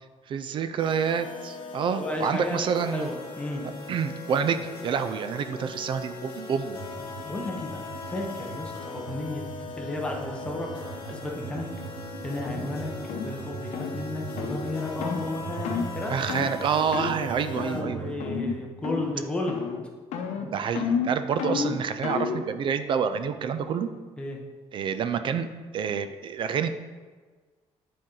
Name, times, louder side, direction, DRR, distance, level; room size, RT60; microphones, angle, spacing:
voice 1, 0.3-3.1 3.6-6.8 16.1-18.1 20.5-23.9 24.7-25.5 25.7-26.7, right 7 dB, 45° right, 10 dB, 0.4 m, -28 dB
sound 1, 0.8-17.8, left 4 dB, 45° left, 1.0 m, -40 dB
voice 2, 1.9-2.6 2.9-3.6 7.0-9.4 9.8-10.7 11.0-11.7 12.2-12.9 13.2-16.1 17.4-19.6 21.4-21.6 24.2-24.4, left 2 dB, 10° left, -1 dB, 0.8 m, -33 dB
sound 2, 6.7-18.6, right 5 dB, 80° right, 0.8 m, -41 dB
sound 3, 12.5-12.6 13.1-13.3 13.7-13.9 14.4-14.6 15.0-15.2 15.6-15.9 16.3-16.5 16.9-17.2 17.6-17.9 18.2-18.6 18.8-19.2 19.5-19.8 20.1-22.4, left 6 dB, 90° left, 0.7 m, -30 dB
9.0 x 4.3 x 3.8 m, 1.4 s
cardioid pair, 160°, 11 cm